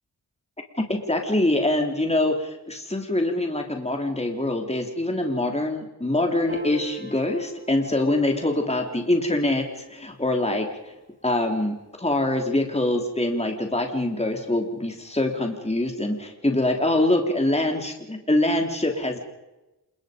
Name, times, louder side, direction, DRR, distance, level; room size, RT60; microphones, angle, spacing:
voice 1, 0.8-10.9 11.2-19.2, left 1 dB, 15° left, 3 dB, 3.6 m, -24 dB
Piano, 6.5-13.1, equal, 30° right, 5.9 m, -43 dB
29.0 x 20.5 x 5.3 m, 1.0 s
cardioid pair, 45°, 39 cm